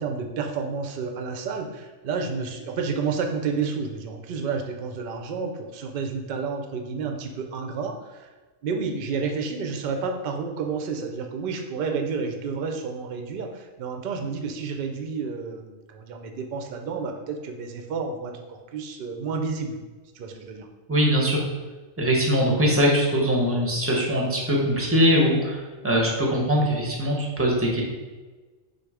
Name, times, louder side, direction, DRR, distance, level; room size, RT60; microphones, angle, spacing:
voice 1, 0.0-8.3 8.6-19.8 20.1-20.7, right 5 dB, 60° right, 4 dB, 0.5 m, -30 dB
voice 2, 20.9-21.4 22.0-27.8, equal, 15° right, -2 dB, 0.5 m, -22 dB
3.9 x 2.5 x 4.7 m, 1.3 s
omnidirectional pair, 1.4 m